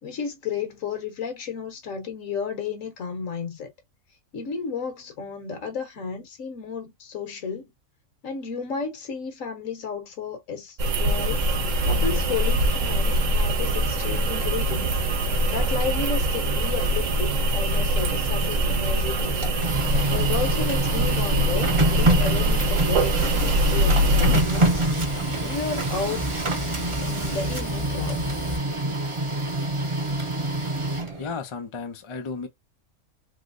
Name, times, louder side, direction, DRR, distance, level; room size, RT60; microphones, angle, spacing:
voice 1, 0.0-3.7 4.3-7.7 8.2-11.5 11.8-15.0 15.5-19.4 20.1-24.9 25.4-26.3 27.0-28.2, left 5 dB, 65° left, 1.4 m, -32 dB
sound 1, 10.8-24.4, right 1 dB, 65° right, 1.0 m, -23 dB
Fire, 11.1-28.6, left 1 dB, 20° left, 0.7 m, -35 dB
Printer, 19.2-31.3, right 2 dB, 30° right, 0.7 m, -26 dB
voice 2, 31.2-32.5, left 5 dB, 45° left, 0.3 m, -33 dB
3.1 x 3.1 x 2.5 m
omnidirectional pair, 1.5 m